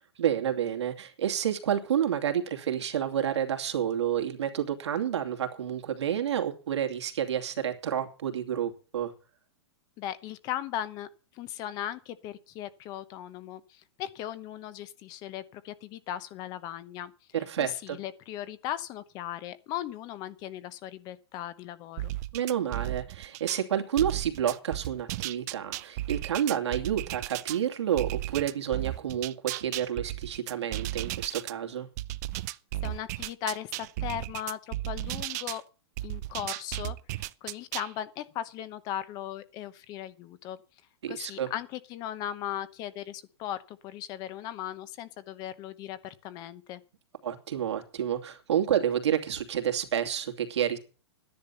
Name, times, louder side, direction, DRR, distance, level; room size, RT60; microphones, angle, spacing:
voice 1, 0.2-9.1 17.3-18.0 22.3-31.9 41.0-41.5 47.2-50.8, right 9 dB, 90° right, 2.6 m, -29 dB
voice 2, 10.0-11.1 11.3-17.1 17.6-22.1 32.8-35.6 36.0-40.6 41.1-46.8, left 11 dB, 25° left, 0.9 m, -38 dB
sound 1, 22.0-23.6 24.0-27.6 28.0-31.5 32.0-35.6 36.0-37.9, right 16 dB, 40° right, 0.5 m, -35 dB
12.5 x 10.5 x 5.7 m
supercardioid pair, 160°, 14 cm